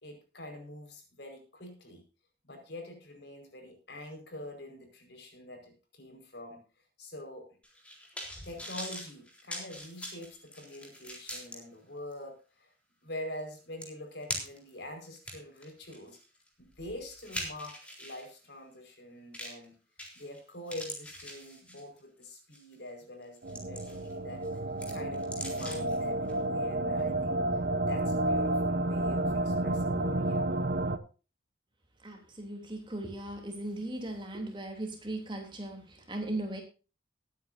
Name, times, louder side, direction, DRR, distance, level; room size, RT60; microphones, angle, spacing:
voice 1, 0.0-2.0 2.4-6.6 7.0-7.5 8.4-12.7 13.0-16.2 16.6-19.8 20.1-24.4 24.9-27.4 27.9-30.4, left 1 dB, 65° left, 4 dB, 5.0 m, -45 dB
sound 1, 7.6-11.6 12.1-12.2 13.4-13.5 13.8-14.7 15.2-18.3 19.3-19.7 20.0-20.4 20.7-22.0 22.5-22.7 23.2-24.1 24.4-26.0 26.3-26.4, equal, 5° left, 3.7 m, -42 dB
sound 2, 23.4-31.0, right 1 dB, 55° right, 0.9 m, -30 dB
voice 2, 32.0-36.6, right 1 dB, 25° right, 3 dB, 3.1 m, -38 dB
21.0 x 9.5 x 2.7 m, 0.34 s
head